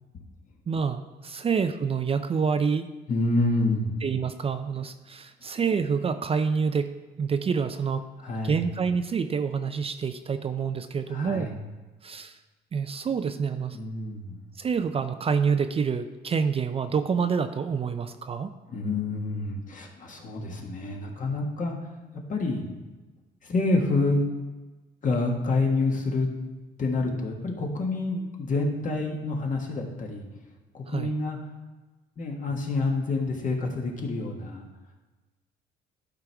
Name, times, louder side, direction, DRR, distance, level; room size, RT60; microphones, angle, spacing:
voice 1, 0.7-2.9 4.0-8.1 8.4-11.5 12.0-12.4 12.7-13.8 14.6-18.5 20.4-20.5 30.9-31.1, right 6 dB, 35° right, 9 dB, 0.4 m, -27 dB
voice 2, 3.1-4.0 8.2-8.6 11.1-11.5 13.7-14.4 18.7-21.8 22.3-22.6 23.4-24.2 25.0-26.3 26.8-30.2 30.7-31.4 32.2-34.6, left 2 dB, 50° left, 0 dB, 1.6 m, -27 dB
11.5 x 4.6 x 3.4 m, 1.2 s
cardioid pair, 85°, 18 cm